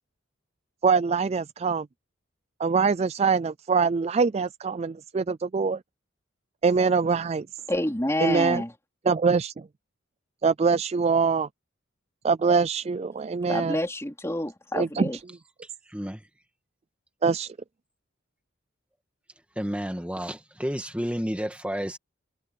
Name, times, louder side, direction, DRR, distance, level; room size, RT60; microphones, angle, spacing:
voice 1, 0.8-1.9 2.6-5.8 6.6-7.5 8.2-8.6 9.1-9.5 10.4-11.5 12.2-13.8 14.7-15.1 17.2-17.5, right 5 dB, 30° right, 0.3 m, -23 dB
voice 2, 7.7-8.7 13.5-15.2, left 1 dB, 15° left, 3.6 m, -28 dB
voice 3, 15.9-16.2 19.6-22.0, equal, 5° right, 2.2 m, -31 dB
head